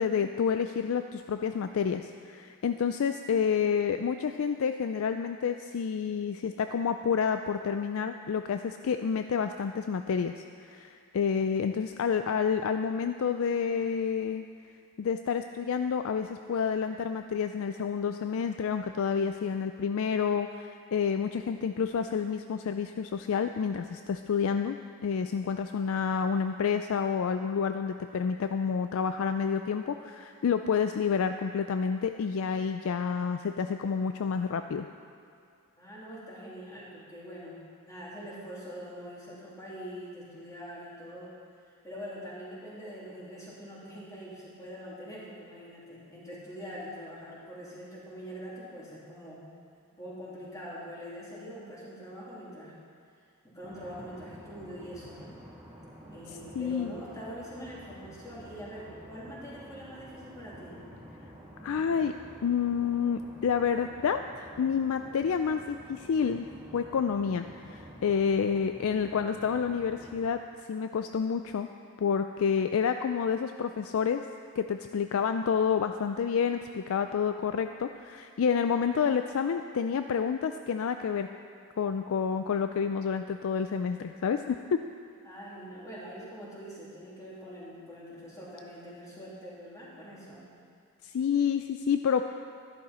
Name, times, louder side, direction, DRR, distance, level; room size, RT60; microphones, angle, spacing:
voice 1, 0.0-14.4 15.0-24.8 25.0-34.9 56.6-56.9 61.6-62.1 62.4-66.5 66.7-70.4 70.7-71.7 72.0-74.2 74.6-81.3 81.8-84.8 91.0-92.2, left 6 dB, 65° left, 8 dB, 0.4 m, -29 dB
voice 2, 35.8-37.6 37.9-41.3 41.8-49.4 49.9-52.8 53.4-55.3 56.1-60.8 85.2-90.5, equal, 15° left, -7 dB, 3.0 m, -44 dB
sound 1, 53.6-70.3, equal, 20° right, 2.8 m, -49 dB
13.0 x 11.5 x 4.3 m, 2.3 s
head